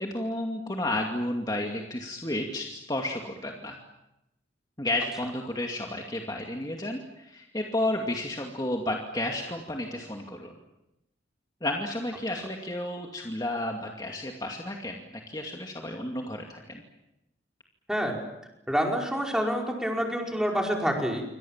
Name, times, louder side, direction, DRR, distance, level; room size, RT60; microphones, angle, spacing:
voice 1, 0.0-3.8 4.8-10.5 11.6-16.8, left 1 dB, 20° left, 1 dB, 2.4 m, -32 dB
voice 2, 18.7-21.2, equal, 5° right, 0 dB, 5.1 m, -27 dB
28.0 x 25.5 x 7.4 m, 0.91 s
head